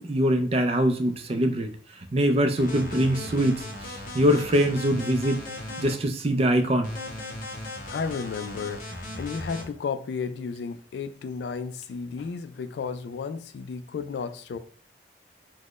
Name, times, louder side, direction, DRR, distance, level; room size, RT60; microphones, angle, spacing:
voice 1, 0.0-1.7 2.1-3.6 4.1-5.4 5.8-6.9, equal, 35° right, 0.4 m, -23 dB
sound 1, 2.6-5.9 6.8-9.6, left 1 dB, 50° left, 0.8 m, -37 dB
voice 2, 7.6-14.6, left 5 dB, 70° left, 0.3 m, -33 dB
4.2 x 2.1 x 3.0 m
head